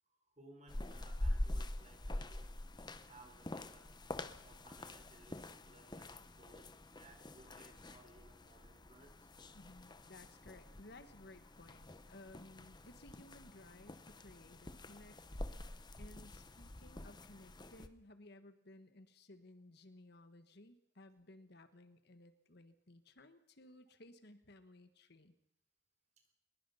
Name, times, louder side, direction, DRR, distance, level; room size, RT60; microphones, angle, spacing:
voice 1, 0.1-2.5 3.0-3.9 4.4-9.1, right 2 dB, 35° right, 4 dB, 4.3 m, -62 dB
sound 1, 0.7-17.9, left 1 dB, 25° left, 0.9 m, -46 dB
voice 2, 9.5-15.2 16.0-25.3, left 2 dB, 55° left, 10 dB, 1.5 m, -58 dB
22.5 x 21.5 x 5.7 m, 0.72 s
head